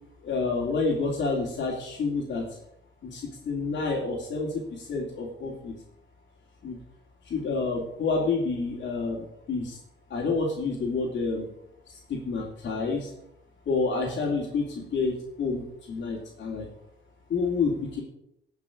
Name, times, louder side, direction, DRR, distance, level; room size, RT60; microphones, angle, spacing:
voice 1, 0.2-2.5 3.0-5.7 6.6-6.8 7.2-9.8 10.1-11.5 11.9-13.1 13.7-16.7 17.3-18.0, left 4 dB, 60° left, -4 dB, 3.1 m, -29 dB
17.5 x 6.1 x 6.4 m, 0.79 s
cardioid pair, 90°, 20 cm